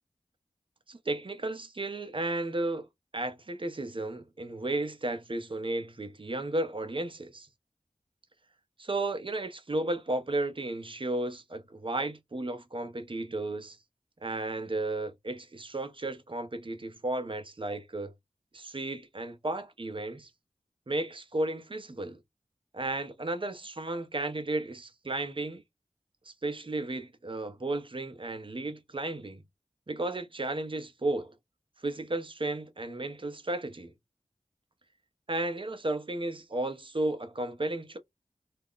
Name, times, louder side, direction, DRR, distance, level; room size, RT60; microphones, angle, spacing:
voice 1, 0.9-2.9 3.1-7.5 8.8-13.8 14.2-18.1 18.5-20.3 20.9-22.2 22.7-25.6 26.3-29.4 29.9-31.3 31.8-33.9 35.3-38.0, right 2 dB, 40° right, 0.7 m, -33 dB
2.4 x 2.2 x 3.6 m
wide cardioid pair, 50°, 13 cm